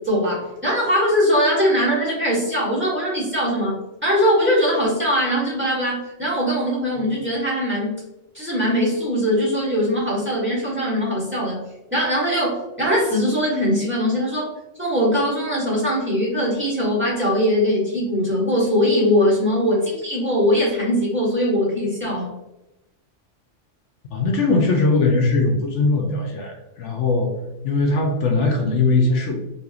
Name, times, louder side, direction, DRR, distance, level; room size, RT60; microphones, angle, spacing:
voice 1, 0.0-8.0 8.3-11.6 11.9-14.5 14.8-22.3, equal, 10° right, -6 dB, 1.1 m, -21 dB
voice 2, 24.1-27.3 27.6-29.4, left 3 dB, 75° left, 2 dB, 0.9 m, -20 dB
4.2 x 2.7 x 2.4 m, 0.95 s
omnidirectional pair, 1.3 m